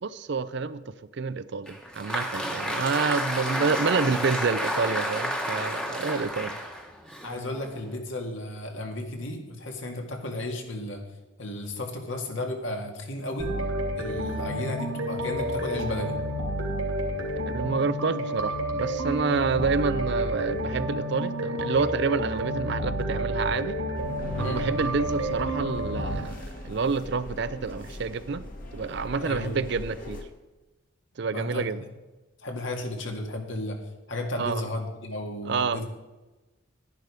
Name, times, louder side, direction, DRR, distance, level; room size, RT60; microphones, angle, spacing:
voice 1, 0.0-6.6 17.5-23.8 24.4-28.4 28.7-30.2 31.2-31.8 34.4-34.6 35.4-35.8, right 4 dB, 55° right, 15 dB, 0.5 m, -28 dB
Applause, 1.7-8.0, equal, 5° left, 1.2 m, -31 dB
voice 2, 7.2-11.0 11.4-13.5 14.0-16.2 24.4-24.6 29.2-29.6 31.3-31.7 32.4-33.8 34.1-35.8, left 1 dB, 65° left, 3 dB, 2.0 m, -33 dB
sound 1, 13.4-26.2, equal, 85° right, 2.9 m, -30 dB
sound 2, 23.9-30.2, equal, 40° left, 1.6 m, -39 dB
11.5 x 10.5 x 4.8 m, 1.1 s
head